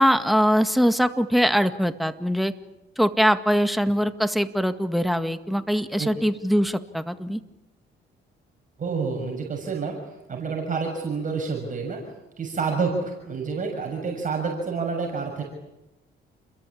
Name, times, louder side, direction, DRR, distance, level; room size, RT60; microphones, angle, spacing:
voice 1, 0.0-2.5 3.0-7.4, equal, ahead, 8 dB, 1.9 m, -22 dB
voice 2, 8.8-10.0 10.3-12.0 12.4-15.4, right 5 dB, 40° right, 1 dB, 6.7 m, -28 dB
29.0 x 22.5 x 8.7 m, 0.93 s
cardioid pair, 90°, 20 cm